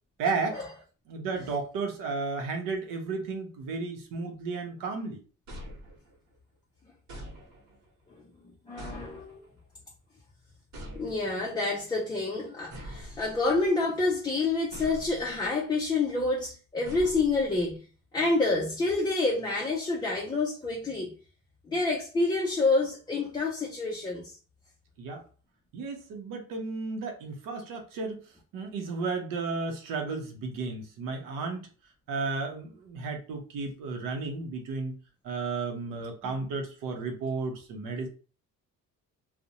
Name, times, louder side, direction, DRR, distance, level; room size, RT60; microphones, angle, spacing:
voice 1, 0.2-0.6 1.1-5.2 25.0-25.2 25.7-28.2 28.5-31.7 32.1-35.0 35.2-38.1, right 4 dB, 85° right, 0.7 m, -33 dB
sound 1, 5.5-6.4 7.1-7.9 8.8-9.6 10.7-11.5 12.7-13.7 14.7-15.5 16.9-17.8, equal, 60° right, 1.0 m, -44 dB
voice 2, 8.7-9.4 10.9-17.8 18.1-21.1 21.7-24.4 36.2-36.3, left 3 dB, 15° left, 0.4 m, -28 dB
2.5 x 2.0 x 2.7 m
cardioid pair, 130°, 32 cm